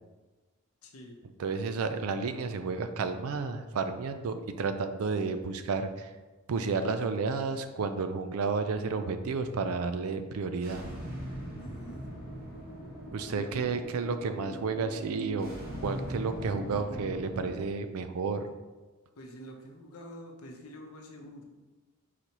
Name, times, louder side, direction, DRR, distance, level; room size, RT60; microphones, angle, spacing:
voice 1, 0.8-1.2 11.6-12.0 13.3-13.8 19.2-21.5, equal, 75° left, 2 dB, 0.7 m, -46 dB
voice 2, 1.4-6.1 6.5-10.8 13.1-15.5 15.8-18.5, right 4 dB, 75° right, 9 dB, 0.4 m, -31 dB
sound 1, 10.6-17.6, right 1 dB, 45° right, 1.3 m, -40 dB
4.6 x 4.0 x 2.9 m, 1.2 s
head